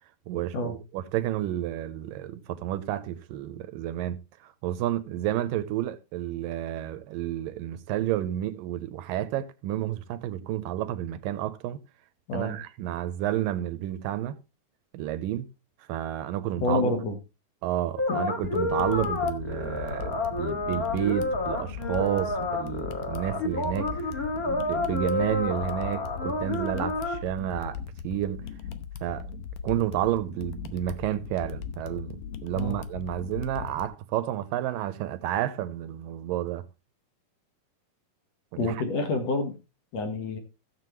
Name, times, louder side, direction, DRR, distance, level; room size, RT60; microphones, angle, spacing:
voice 1, 0.3-11.8 12.3-14.4 14.9-15.5 15.9-16.9 17.6-27.8 28.0-28.5 29.0-29.3 29.6-36.7 38.6-38.8, right 12 dB, 80° right, 2.3 m, -31 dB
voice 2, 16.6-17.2 18.1-18.2 32.6-32.8 38.6-39.6 39.9-40.4, left 2 dB, 55° left, 2.2 m, -28 dB
sound 1, 18.0-27.2, left 2 dB, 30° left, 1.8 m, -30 dB
sound 2, 18.4-33.9, left 6 dB, 75° left, 1.7 m, -39 dB
15.5 x 7.4 x 3.1 m
omnidirectional pair, 4.1 m